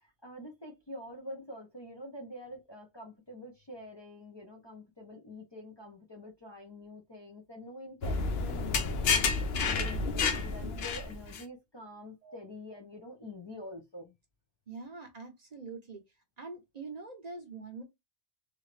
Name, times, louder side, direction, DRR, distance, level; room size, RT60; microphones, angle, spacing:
voice 1, 0.0-9.3 9.6-14.2, left 1 dB, 30° left, 0.6 m, -46 dB
sound 1, 8.0-11.4, left 4 dB, 70° left, 0.9 m, -30 dB
voice 2, 14.7-16.0 16.4-17.8, right 4 dB, 40° right, 0.8 m, -44 dB
3.3 x 2.6 x 3.2 m
omnidirectional pair, 1.1 m